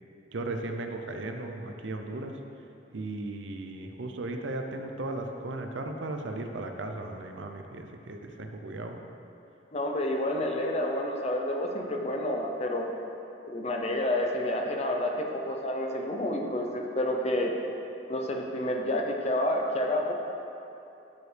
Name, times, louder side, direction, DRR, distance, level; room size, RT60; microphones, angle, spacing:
voice 1, 0.3-2.4 2.9-9.0, right 2 dB, 80° right, 4 dB, 0.6 m, -36 dB
voice 2, 9.7-12.9 13.5-17.5 18.1-20.1, left 1 dB, 35° left, 2 dB, 0.6 m, -29 dB
12.0 x 4.9 x 3.4 m, 2.8 s
head